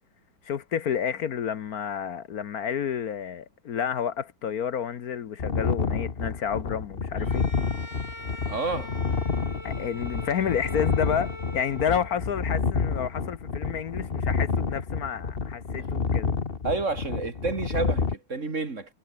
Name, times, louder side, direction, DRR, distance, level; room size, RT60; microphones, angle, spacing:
voice 1, 0.4-7.5 9.6-16.3, left 8 dB, 65° left, 1.5 m, -30 dB
sound 1, 5.4-18.1, left 5 dB, 35° left, 1.6 m, -29 dB
Bowed string instrument, 7.2-12.4, left 1 dB, 15° left, 3.9 m, -42 dB
voice 2, 8.5-8.9 15.8-15.9 16.6-18.9, right 3 dB, 45° right, 2.9 m, -30 dB
omnidirectional pair, 1.8 m